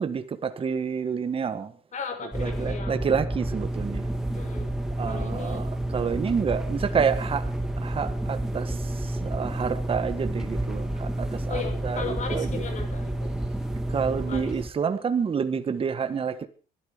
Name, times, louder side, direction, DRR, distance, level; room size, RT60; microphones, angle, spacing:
voice 1, 0.0-1.7 2.4-4.1 5.0-5.7 5.9-7.5 7.8-8.8 9.0-12.6 13.9-16.5, right 6 dB, 35° right, 1.5 m, -28 dB
voice 2, 1.9-3.0 4.3-4.8 5.1-5.6 11.5-13.3 14.2-14.6, left 6 dB, 45° left, 6.1 m, -36 dB
sound 1, 2.3-14.7, right 1 dB, 5° right, 2.5 m, -30 dB
21.5 x 12.5 x 5.1 m
cardioid pair, 110°, 17 cm